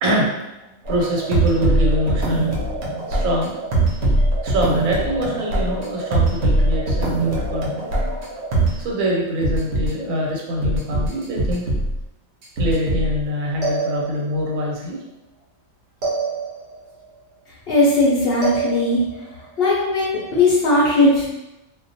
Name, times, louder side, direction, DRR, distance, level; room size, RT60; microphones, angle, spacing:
voice 1, 0.0-0.3 0.9-3.6 4.4-7.9 8.8-11.6 12.6-15.0, equal, 85° right, -2 dB, 1.0 m, -24 dB
sound 1, 0.9-8.8 9.4-9.9 10.6-12.0 12.4-13.2 13.6-14.4 16.0-16.8 18.4-19.2, right 2 dB, 60° right, 0.8 m, -22 dB
voice 2, 17.7-19.0 19.6-21.3, left 2 dB, 65° left, -5 dB, 0.6 m, -18 dB
2.3 x 2.1 x 2.6 m, 0.94 s
omnidirectional pair, 1.4 m